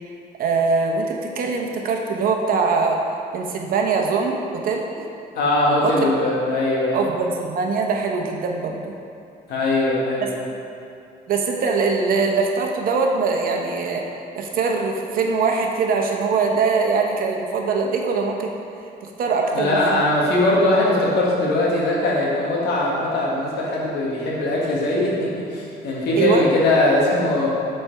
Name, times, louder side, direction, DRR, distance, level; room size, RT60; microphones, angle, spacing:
voice 1, 0.4-3.0 3.3-5.0 5.8-6.1 6.9-8.9 11.3-14.0 14.4-18.5 19.0-20.0 26.2-26.4, right 4 dB, 60° right, 2 dB, 0.9 m, -22 dB
voice 2, 5.3-7.1 9.5-10.3 19.4-27.5, left 1 dB, 75° left, -5 dB, 1.6 m, -20 dB
6.7 x 4.4 x 4.6 m, 2.6 s
cardioid pair, 110°, 17 cm